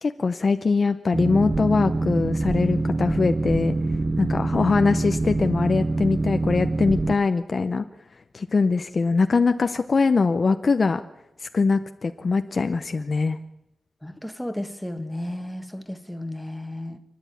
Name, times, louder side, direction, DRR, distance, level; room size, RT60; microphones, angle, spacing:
voice 1, 0.0-3.7 4.2-7.8 8.3-11.0 11.4-13.4, left 4 dB, 40° left, 0.7 m, -22 dB
Boat Water vehicle, 1.1-7.2, right 2 dB, 25° right, 0.8 m, -25 dB
voice 2, 14.0-17.0, left 1 dB, 5° left, 1.5 m, -33 dB
28.5 x 10.5 x 9.2 m
wide cardioid pair, 140°, 0 cm